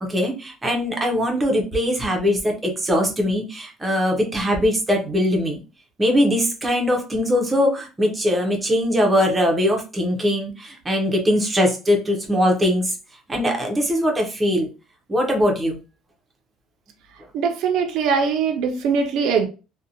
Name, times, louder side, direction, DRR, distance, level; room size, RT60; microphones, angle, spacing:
voice 1, 0.0-5.6 6.0-12.9 13.3-14.7 15.1-15.8, equal, 10° right, 0.5 m, -21 dB
voice 2, 17.3-19.5, right 5 dB, 60° right, 0.4 m, -21 dB
2.6 x 2.1 x 2.6 m
cardioid pair, 175°, 0 cm